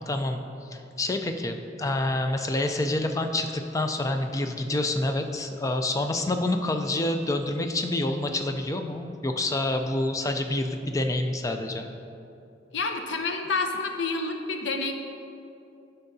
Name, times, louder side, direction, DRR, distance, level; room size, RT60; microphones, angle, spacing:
voice 1, 0.1-0.4 0.7-11.9, left 2 dB, 20° left, 6 dB, 0.3 m, -27 dB
voice 2, 12.7-14.9, left 3 dB, 85° left, 5 dB, 0.6 m, -28 dB
10.5 x 5.6 x 2.7 m, 2.7 s
head